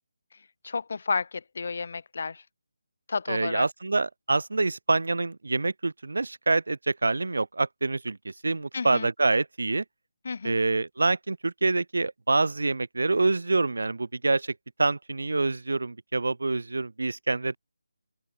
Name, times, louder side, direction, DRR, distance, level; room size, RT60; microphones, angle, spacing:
voice 1, 0.6-2.4 3.1-3.7 8.7-9.1 10.2-10.6, left 4 dB, 55° left, 0.6 m, -31 dB
voice 2, 3.3-9.8 10.4-17.6, right 3 dB, 80° right, 0.7 m, -26 dB
open air
figure-of-eight pair, 160°, 0 cm